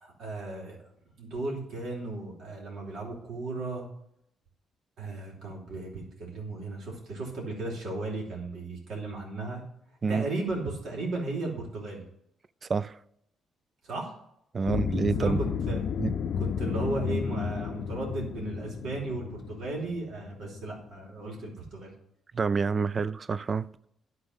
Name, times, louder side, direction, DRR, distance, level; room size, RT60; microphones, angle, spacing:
voice 1, 0.0-0.8 1.2-3.9 5.0-9.6 10.1-12.0 13.8-14.1 14.6-14.8 15.2-15.3 15.7-15.9 16.4-21.9, right 2 dB, 70° right, 3.0 m, -35 dB
voice 2, 14.5-15.4 16.0-16.1 22.3-23.7, right 5 dB, 40° right, 0.3 m, -27 dB
sound 1, 14.6-20.9, left 7 dB, 65° left, 0.5 m, -32 dB
11.0 x 4.1 x 5.5 m
cardioid pair, 90°, 0 cm